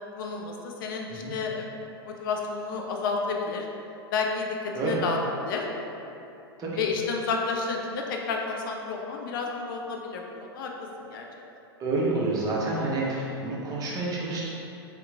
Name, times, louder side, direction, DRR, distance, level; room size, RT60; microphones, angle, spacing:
voice 1, 0.2-1.7 2.0-3.7 4.1-5.2 5.4-5.7 6.8-10.7 11.0-11.3, left 4 dB, 55° left, 1 dB, 0.4 m, -31 dB
voice 2, 11.8-14.5, right 2 dB, 30° right, -5 dB, 0.7 m, -28 dB
3.5 x 2.9 x 2.3 m, 2.9 s
figure-of-eight pair, 100°, 13 cm